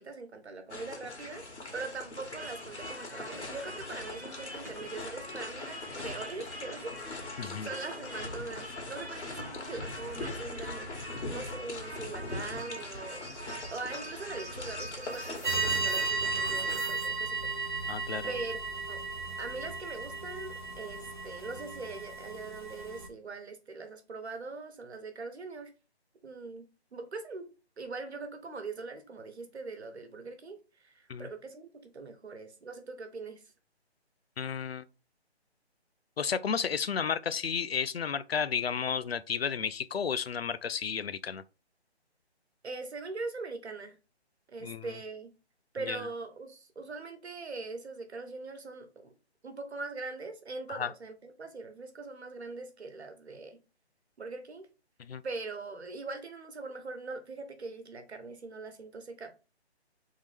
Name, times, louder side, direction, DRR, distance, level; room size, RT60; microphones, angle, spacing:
voice 1, 0.0-7.0 7.6-17.9 18.3-19.0 19.4-25.7 26.2-27.5 27.8-33.4 42.6-44.0 44.5-45.3 45.7-49.1 49.4-53.6 54.2-54.7 55.2-59.3, right 3 dB, 70° right, 1.1 m, -42 dB
sound 1, 0.7-16.8, left 2 dB, 85° left, 1.7 m, -41 dB
sound 2, 2.3-17.1, equal, 15° right, 0.7 m, -46 dB
voice 2, 7.4-7.7 17.9-18.3 31.1-31.3 34.4-34.8 36.2-41.4 44.6-44.9 45.9-46.1 50.7-50.9 55.0-55.2, left 6 dB, 65° left, 0.4 m, -32 dB
sound 3, 15.4-23.1, right 4 dB, 45° right, 0.5 m, -34 dB
3.6 x 3.1 x 3.3 m
hypercardioid pair, 175°, 33 cm